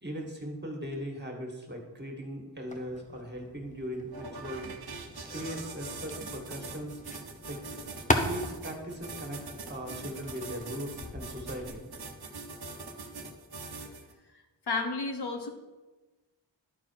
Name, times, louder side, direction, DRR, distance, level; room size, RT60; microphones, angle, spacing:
voice 1, 0.0-4.7 5.3-7.0 7.5-7.6 8.2-11.8, equal, 25° right, 1 dB, 2.1 m, -39 dB
sound 1, 2.7-12.0, left 1 dB, 15° left, 0.9 m, -38 dB
sound 2, 4.1-14.1, right 3 dB, 55° right, 1.1 m, -42 dB
voice 2, 14.7-15.5, left 3 dB, 60° left, 5 dB, 1.2 m, -32 dB
11.0 x 4.1 x 4.7 m, 1.1 s
cardioid pair, 55°, 44 cm